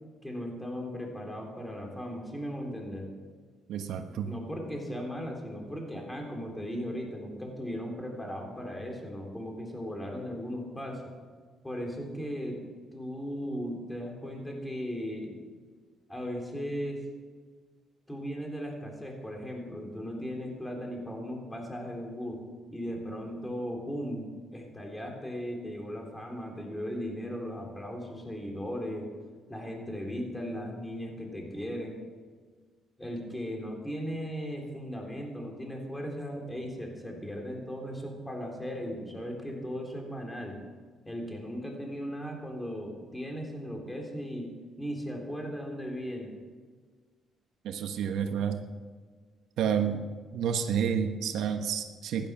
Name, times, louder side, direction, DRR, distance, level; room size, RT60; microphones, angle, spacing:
voice 1, 0.2-3.1 4.3-11.1 11.6-12.6 12.9-15.4 16.1-17.0 18.1-22.4 22.7-29.1 29.5-31.9 33.0-40.6 41.1-44.5 44.8-46.3, equal, 10° left, 1 dB, 3.8 m, -37 dB
voice 2, 3.7-4.3 47.6-48.6 49.6-50.0 50.3-52.3, right 7 dB, 80° right, 6 dB, 1.2 m, -29 dB
15.5 x 11.0 x 6.2 m, 1.5 s
cardioid pair, 90°, 0 cm